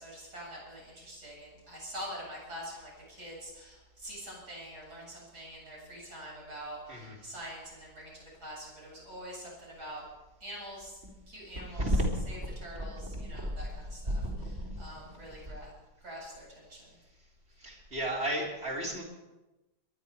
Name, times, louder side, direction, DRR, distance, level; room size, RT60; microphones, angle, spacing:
voice 1, 0.0-10.0 10.4-11.0 11.3-11.9 12.3-15.7 16.0-17.0, equal, 75° right, -4 dB, 8.5 m, -45 dB
voice 2, 11.7-12.5 12.8-13.5 14.1-15.5 17.6-19.0, equal, 40° right, -2 dB, 4.0 m, -33 dB
22.5 x 11.5 x 5.1 m, 1.1 s
omnidirectional pair, 1.7 m